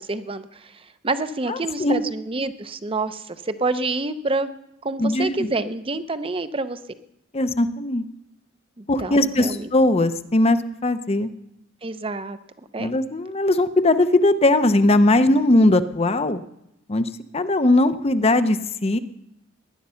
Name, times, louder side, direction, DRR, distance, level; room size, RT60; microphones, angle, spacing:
voice 1, 0.0-4.6 4.8-6.8 8.8-9.7 11.8-12.4 12.7-12.9, right 3 dB, 25° right, 11 dB, 0.7 m, -28 dB
voice 2, 1.5-2.0 5.0-5.5 7.3-8.1 8.9-11.3 12.8-16.4 16.9-19.0, left 2 dB, 30° left, 11 dB, 0.7 m, -19 dB
19.0 x 11.0 x 5.7 m, 0.83 s
head